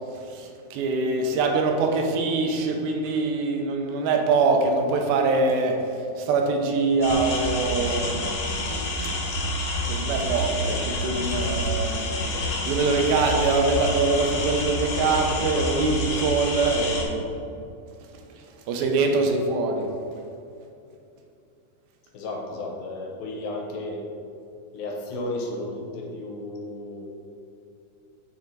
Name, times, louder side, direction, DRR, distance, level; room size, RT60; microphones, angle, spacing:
voice 1, 0.3-5.8 6.2-8.2 9.9-12.0 12.7-17.3 18.7-19.9, right 3 dB, 90° right, 3 dB, 2.6 m, -23 dB
sound 1, 7.0-17.0, left 1 dB, 70° left, 2.7 m, -28 dB
voice 2, 22.1-24.0 24.7-27.1, left 2 dB, 90° left, 0 dB, 2.8 m, -33 dB
7.8 x 4.4 x 4.0 m, 2.6 s
omnidirectional pair, 4.1 m